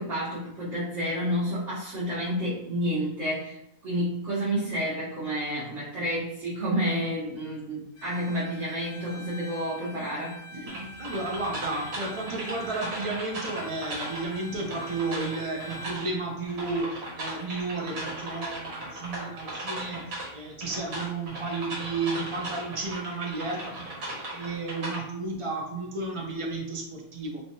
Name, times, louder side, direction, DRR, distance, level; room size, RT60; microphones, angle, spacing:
voice 1, 0.0-10.4, equal, 55° right, -10 dB, 1.3 m, -30 dB
Bowed string instrument, 7.9-16.1, right 1 dB, 65° left, 1.1 m, -44 dB
voice 2, 10.5-20.0 20.3-23.9 24.3-27.4, right 3 dB, 40° right, -1 dB, 0.4 m, -33 dB
sound 1, 10.7-25.0, right 1 dB, 75° right, 1.5 m, -37 dB
3.3 x 2.9 x 2.8 m, 0.78 s
omnidirectional pair, 1.5 m